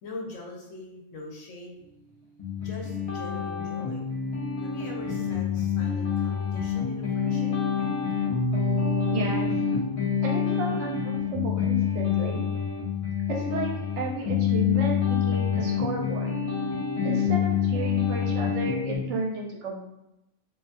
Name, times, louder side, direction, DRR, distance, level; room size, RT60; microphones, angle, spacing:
voice 1, 0.0-1.8 2.6-4.2 4.6-7.5, left 2 dB, 80° left, 0 dB, 0.9 m, -42 dB
sound 1, 2.4-19.0, left 7 dB, 50° left, 0.4 m, -27 dB
voice 2, 9.1-9.5 10.2-12.4 13.3-16.3 17.0-19.8, right 3 dB, 70° right, 0 dB, 0.9 m, -33 dB
2.4 x 2.3 x 2.4 m, 0.89 s
omnidirectional pair, 1.3 m